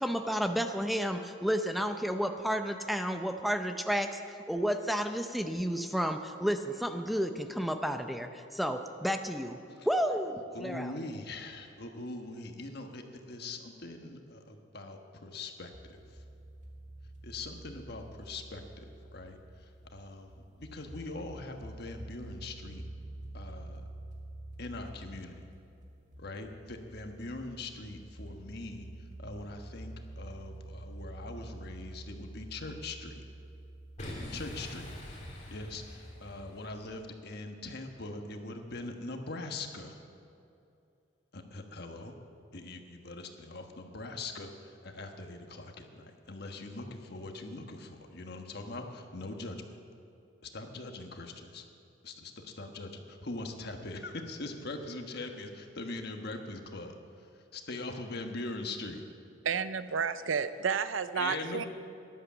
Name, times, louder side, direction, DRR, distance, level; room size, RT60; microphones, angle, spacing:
voice 1, 0.0-4.2 4.5-9.6 9.8-10.9, equal, ahead, 6 dB, 0.6 m, -31 dB
voice 2, 10.5-16.2 17.2-22.8 23.3-23.8 24.6-25.4 26.2-33.2 34.3-34.9 35.5-40.0 41.3-42.1 42.5-49.7 50.4-51.6 52.0-59.0 61.1-61.7, left 2 dB, 55° left, 4 dB, 1.3 m, -42 dB
sound 1, 15.7-34.2, right 1 dB, 40° right, 2.1 m, -48 dB
Boom, 34.0-36.9, left 1 dB, 35° left, 2.9 m, -43 dB
voice 3, 59.4-61.7, right 6 dB, 85° right, 13 dB, 0.6 m, -31 dB
13.0 x 11.5 x 7.2 m, 2.7 s
head